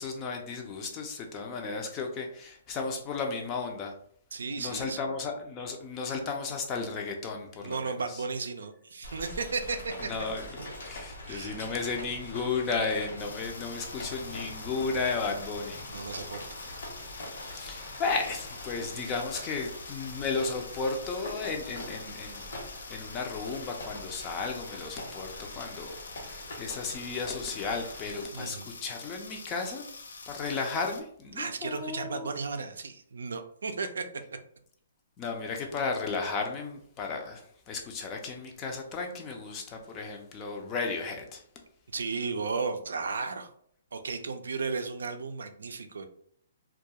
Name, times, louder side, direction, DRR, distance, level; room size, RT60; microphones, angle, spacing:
voice 1, 0.0-3.9 4.6-7.9 10.1-10.5 10.8-15.8 17.5-22.5 22.9-29.9 30.3-32.3 35.2-41.4, left 4 dB, 20° left, 3 dB, 0.4 m, -34 dB
voice 2, 4.3-5.0 7.6-10.1 11.3-11.6 15.9-16.6 18.9-19.0 19.4-19.5 28.3-28.7 31.4-34.0 41.9-43.5 43.9-46.1, right 4 dB, 85° right, 7 dB, 0.3 m, -34 dB
Rain, 9.0-28.2, left 1 dB, 70° left, 1.0 m, -43 dB
sound 1, 13.2-31.0, left 4 dB, 85° left, 0.4 m, -46 dB
2.3 x 2.2 x 2.8 m, 0.64 s
hypercardioid pair, 155°, 0 cm